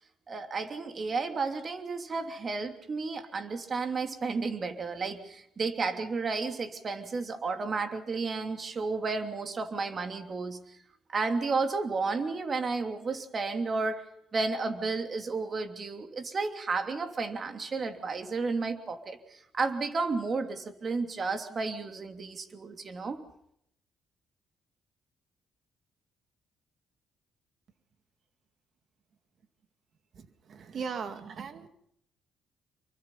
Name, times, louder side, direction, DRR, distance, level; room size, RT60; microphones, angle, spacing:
voice 1, 0.3-10.8 11.1-14.0 14.3-23.2, right 4 dB, 40° right, 6 dB, 3.0 m, -32 dB
voice 2, 30.1-31.7, right 6 dB, 55° right, 8 dB, 2.3 m, -38 dB
26.5 x 24.0 x 5.7 m, 0.72 s
cardioid pair, 90°, 0 cm